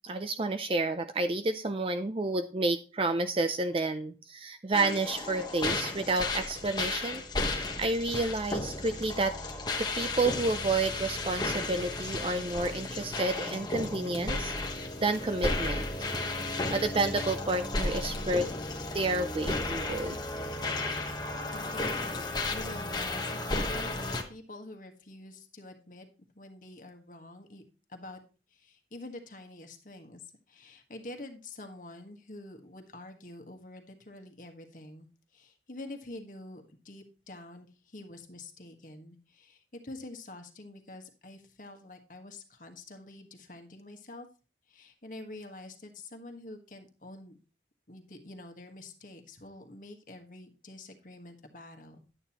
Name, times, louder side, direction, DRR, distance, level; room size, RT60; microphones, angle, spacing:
voice 1, 0.0-9.3 9.8-15.8 16.7-18.5 18.9-20.2, right 2 dB, 30° right, 9 dB, 0.5 m, -30 dB
sound 1, 4.7-24.2, left 2 dB, 25° left, 1.2 m, -34 dB
voice 2, 21.5-24.0 24.3-26.1 26.3-27.6 27.9-28.2 28.5-35.1 35.3-44.3 44.7-47.4 47.9-52.0, left 2 dB, 45° left, 5 dB, 1.5 m, -47 dB
11.0 x 9.0 x 2.9 m, 0.36 s
head